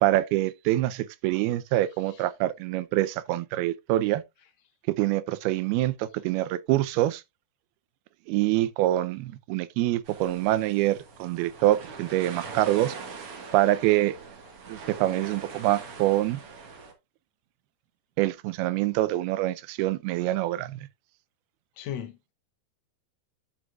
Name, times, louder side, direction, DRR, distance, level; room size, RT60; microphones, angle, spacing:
voice 1, 0.0-4.2 5.0-7.2 8.3-12.9 13.5-14.2 14.7-16.4 18.2-20.8, right 15 dB, 85° right, 2.5 m, -25 dB
sound 1, 10.1-16.9, right 5 dB, 50° right, 1.9 m, -42 dB
voice 2, 21.8-22.3, left 9 dB, 85° left, 1.6 m, -37 dB
11.5 x 6.3 x 2.4 m
omnidirectional pair, 4.5 m